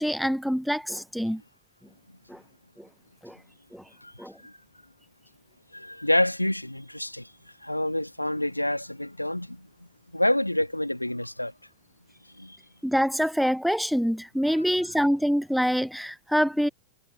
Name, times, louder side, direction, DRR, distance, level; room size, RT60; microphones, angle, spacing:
voice 1, 0.0-1.4 2.3-2.4 2.8-2.9 3.2-3.4 3.7-3.8 4.2-4.3 12.8-16.7, equal, ahead, 0.7 m, -25 dB
voice 2, 5.7-7.3 7.6-9.7 10.1-11.5 12.4-12.6, left 1 dB, 85° left, 1.8 m, -27 dB
figure-of-eight pair, 90°, 0 cm